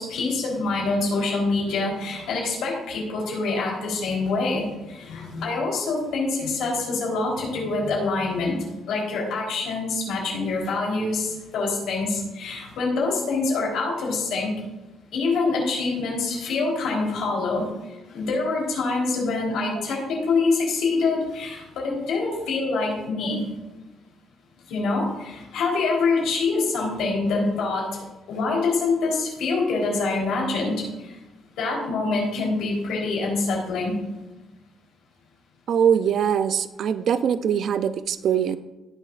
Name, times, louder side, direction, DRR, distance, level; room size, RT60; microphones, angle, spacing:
voice 1, 0.0-8.6 8.9-14.5 15.1-17.7 18.1-23.4 24.7-28.0 28.3-31.1 31.6-33.9, left 3 dB, 85° left, -2 dB, 3.7 m, -25 dB
voice 2, 35.7-38.6, right 8 dB, 65° right, 13 dB, 0.5 m, -22 dB
18.5 x 6.4 x 2.5 m, 1.1 s
cardioid pair, 90°, 0 cm